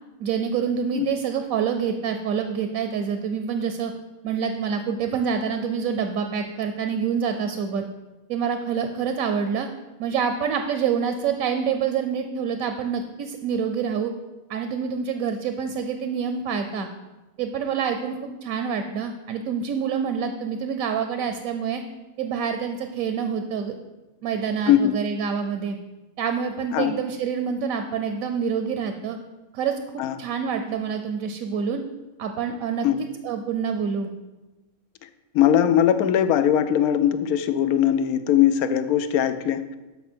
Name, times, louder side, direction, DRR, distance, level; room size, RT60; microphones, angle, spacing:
voice 1, 0.2-3.9 4.2-7.8 8.3-9.7 10.0-14.1 14.5-16.9 17.4-21.8 22.2-23.7 24.2-25.8 26.2-29.2 29.5-29.7 30.2-31.8 32.2-32.9 33.2-34.1, right 6 dB, 75° right, 7 dB, 1.1 m, -26 dB
voice 2, 35.3-39.6, left 10 dB, 85° left, 11 dB, 1.1 m, -20 dB
12.5 x 5.6 x 4.4 m, 1.1 s
omnidirectional pair, 1.5 m